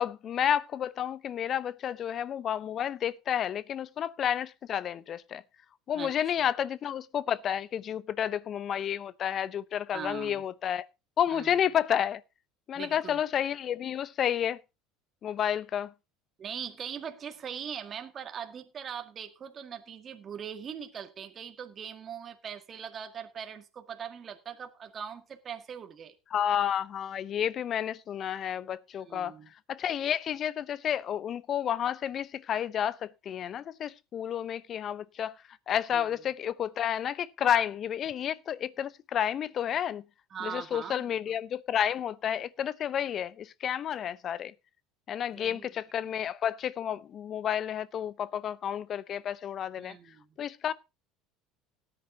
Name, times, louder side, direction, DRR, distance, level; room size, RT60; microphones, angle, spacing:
voice 1, 0.0-5.4 5.9-10.9 11.2-12.2 12.7-14.6 15.2-15.9 26.3-29.4 29.7-35.3 35.7-40.0 40.4-44.5 45.1-50.0 50.4-50.7, left 9 dB, 45° left, 0.7 m, -31 dB
voice 2, 5.9-6.3 9.9-10.4 11.3-11.5 12.7-13.2 16.4-26.1 29.0-29.5 35.9-36.0 40.3-41.1 45.3-45.7 49.8-50.2, right 7 dB, 40° right, 1.8 m, -41 dB
18.0 x 9.8 x 2.8 m
hypercardioid pair, 70°, 0 cm